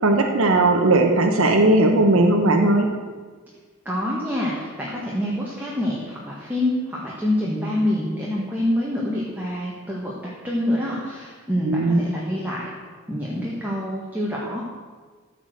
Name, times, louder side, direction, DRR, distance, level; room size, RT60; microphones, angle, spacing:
voice 1, 0.0-2.9 11.6-12.0, right 2 dB, 80° right, 3 dB, 1.0 m, -17 dB
voice 2, 3.8-12.7 13.1-14.6, left 1 dB, 10° right, -5 dB, 1.6 m, -26 dB
14.5 x 5.0 x 8.0 m, 1.5 s
head